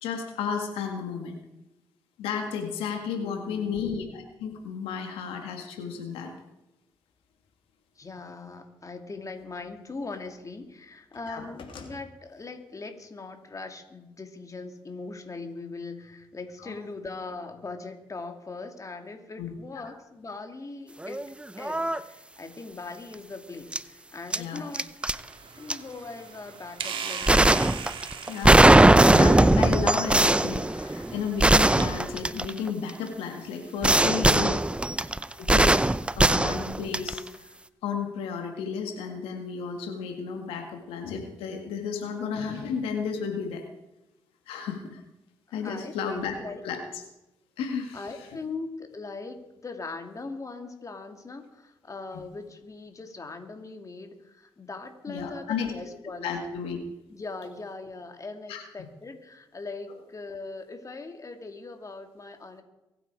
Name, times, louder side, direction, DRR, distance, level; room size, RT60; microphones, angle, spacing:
voice 1, 0.0-1.4 2.2-6.3 11.3-11.5 16.6-16.7 19.4-19.5 24.4-24.7 28.3-34.6 35.4-35.7 36.2-37.5 37.8-43.6 44.5-45.0 45.5-46.3 46.6-47.0 47.6-48.1 52.1-52.2 55.1-55.7 56.2-56.8 58.5-58.6, left 6 dB, 90° left, 4 dB, 1.9 m, -33 dB
voice 2, 3.1-3.9 8.0-21.2 21.6-24.9 25.6-27.6 34.5-34.7 45.5-46.6 47.9-56.3 57.1-62.6, left 3 dB, 35° left, 5 dB, 2.7 m, -40 dB
sound 1, 7.4-7.5 9.2-10.5 10.8-12.0, left 4 dB, 65° left, 2.9 m, -48 dB
sound 2, 21.0-21.3 21.6-22.0 23.7-23.8 24.3-25.2 25.7-25.8 27.3-32.9 33.8-37.3, right 1 dB, 10° right, 0.7 m, -20 dB
sound 3, 25.0-31.8, right 6 dB, 65° right, 2.0 m, -40 dB
23.5 x 9.1 x 4.9 m, 0.93 s
supercardioid pair, 60°, 9 cm